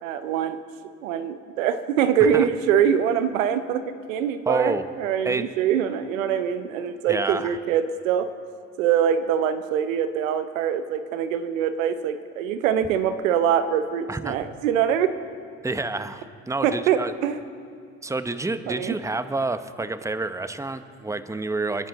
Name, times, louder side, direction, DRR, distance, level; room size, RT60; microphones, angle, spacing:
voice 1, 0.0-0.6 1.0-8.3 8.8-15.2 16.6-17.4 18.7-19.0, right 8 dB, 85° right, 11 dB, 0.8 m, -24 dB
voice 2, 4.5-4.9 5.2-5.5 7.1-7.6 14.1-14.4 15.6-17.1 18.0-21.9, right 3 dB, 10° right, 11 dB, 0.9 m, -28 dB
28.5 x 10.5 x 4.1 m, 2.4 s
hypercardioid pair, 55°, 39 cm